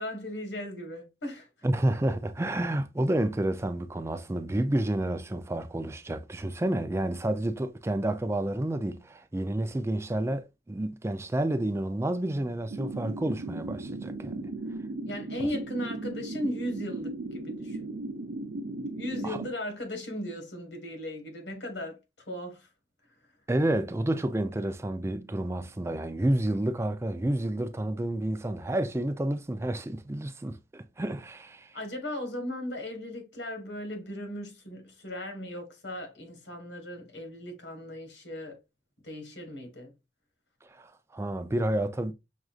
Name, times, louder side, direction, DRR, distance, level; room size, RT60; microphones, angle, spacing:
voice 1, 0.0-1.5 15.0-17.9 18.9-22.0 22.3-22.7 31.7-38.6 39.0-39.9, left 1 dB, 80° left, 1.5 m, -37 dB
voice 2, 1.6-14.4 19.2-19.4 23.5-31.7 40.8-42.1, right 1 dB, 15° right, 0.4 m, -30 dB
sound 1, 12.7-19.5, right 2 dB, 75° right, 0.6 m, -37 dB
6.1 x 2.6 x 2.4 m
head